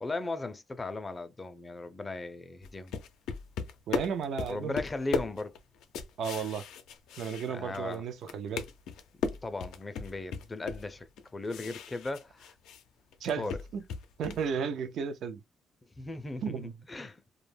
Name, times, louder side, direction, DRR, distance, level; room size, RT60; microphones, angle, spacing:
voice 1, 0.0-3.0 4.5-5.6 7.4-8.5 9.4-12.5 13.4-13.6 16.0-17.2, left 2 dB, 25° left, 0.4 m, -37 dB
sound 1, 2.6-7.9 8.2-12.8 13.1-14.5, left 6 dB, 85° left, 0.4 m, -37 dB
voice 2, 3.9-4.8 6.2-6.6 7.2-8.7 13.2-13.8 14.2-15.4 16.4-16.7, right 6 dB, 70° right, 0.5 m, -34 dB
2.2 x 2.0 x 3.2 m
cardioid pair, 90°, 0 cm